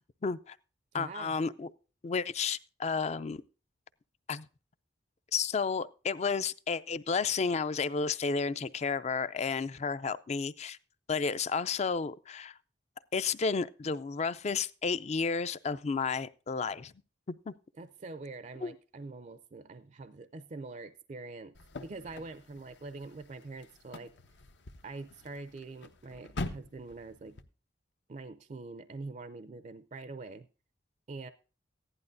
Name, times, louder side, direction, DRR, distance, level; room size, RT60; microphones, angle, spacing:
voice 1, 0.2-0.6 0.9-1.7 2.0-3.4 4.3-4.4 5.3-10.8 11.1-12.5 13.1-16.9 17.5-17.6 18.6-18.7, left 5 dB, 40° left, 0.4 m, -32 dB
voice 2, 0.9-1.3 17.8-21.6 21.8-24.1 24.8-27.4 28.1-30.5 31.1-31.3, right 3 dB, 40° right, 0.4 m, -44 dB
sound 1, 21.5-27.4, left 2 dB, 80° left, 0.9 m, -44 dB
15.5 x 11.0 x 2.6 m
head